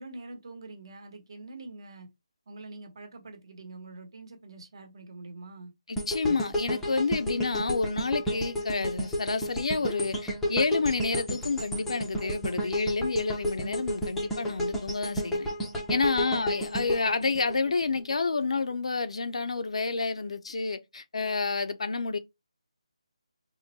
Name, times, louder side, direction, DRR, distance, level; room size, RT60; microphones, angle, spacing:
voice 1, 0.0-2.1 2.5-5.7 16.0-16.5, right 2 dB, 45° right, 1.0 m, -45 dB
voice 2, 5.9-15.5 15.9-22.2, left 4 dB, 65° left, 0.6 m, -29 dB
sound 1, 6.0-18.1 18.6-18.7, equal, 5° left, 0.6 m, -32 dB
3.7 x 2.1 x 4.0 m
figure-of-eight pair, 165°, 4 cm